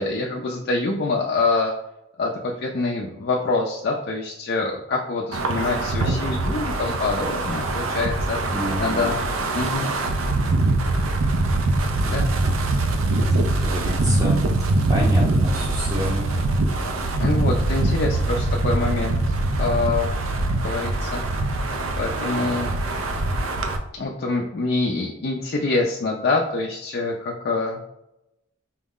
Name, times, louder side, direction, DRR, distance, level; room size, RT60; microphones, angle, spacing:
voice 1, 0.0-1.7 2.2-9.2 9.5-9.9 12.1-12.3 17.2-19.2 19.6-20.1 20.6-21.2 22.0-22.7 23.9-27.8, left 3 dB, 50° left, -1 dB, 0.4 m, -25 dB
Wind, 5.3-23.8, right 2 dB, 85° right, 0.5 m, -23 dB
voice 2, 8.5-9.1 13.4-14.4 14.9-16.3, equal, 15° right, -6 dB, 0.6 m, -29 dB
4.4 x 2.0 x 3.6 m, 0.87 s
head